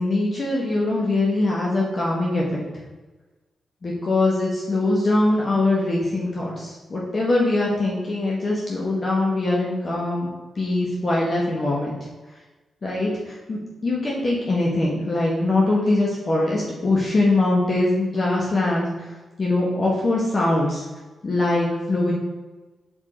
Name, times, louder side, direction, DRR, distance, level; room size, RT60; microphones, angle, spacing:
voice 1, 0.0-2.6 3.8-11.9 12.8-20.8 21.2-22.1, left 2 dB, 40° left, -4 dB, 1.5 m, -22 dB
6.0 x 5.4 x 4.4 m, 1.2 s
cardioid pair, 85°, 0 cm